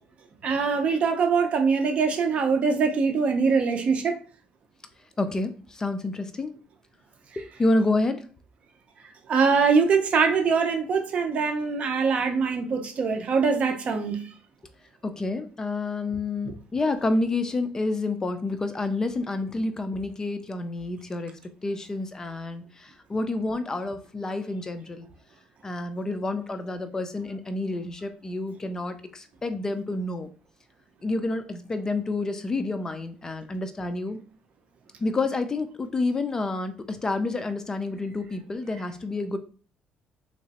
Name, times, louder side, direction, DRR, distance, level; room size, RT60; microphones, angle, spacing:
voice 1, 0.4-4.2 9.3-14.2, right 5 dB, 50° right, 0.7 m, -23 dB
voice 2, 5.2-6.5 7.4-8.2 15.0-21.3 21.6-25.1 25.6-30.3 31.0-34.2 35.0-39.4, left 2 dB, 20° left, 0.3 m, -29 dB
3.5 x 3.0 x 2.8 m
cardioid pair, 125°, 3 cm